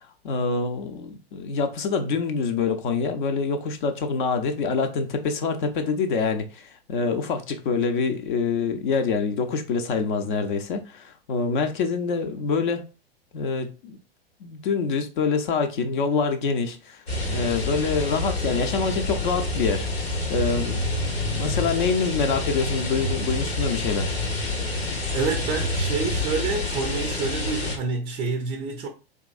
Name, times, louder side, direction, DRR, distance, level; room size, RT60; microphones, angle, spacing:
voice 1, 0.2-12.8 13.3-14.0 14.4-19.9 20.3-24.1, left 5 dB, 50° left, 0.7 m, -26 dB
sound 1, 17.1-27.8, left 2 dB, 80° left, 1.1 m, -27 dB
voice 2, 25.1-28.9, right 5 dB, 20° right, 0.4 m, -28 dB
3.7 x 3.0 x 2.4 m
figure-of-eight pair, 100°, 31 cm